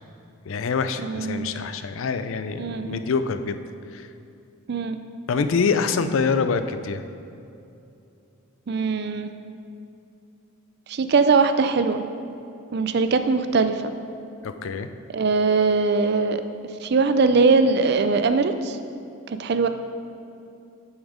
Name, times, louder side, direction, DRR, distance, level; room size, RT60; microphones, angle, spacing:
voice 1, 0.5-3.6 3.9-4.1 5.3-7.0 14.4-14.9, left 5 dB, 70° left, 10 dB, 0.4 m, -25 dB
voice 2, 1.0-1.5 2.6-3.0 4.7-5.0 8.7-9.3 10.9-12.0 12.7-13.8 15.1-16.4 16.8-18.8 19.4-19.7, right 4 dB, 50° right, 9 dB, 0.4 m, -21 dB
7.2 x 7.1 x 4.9 m, 2.7 s
head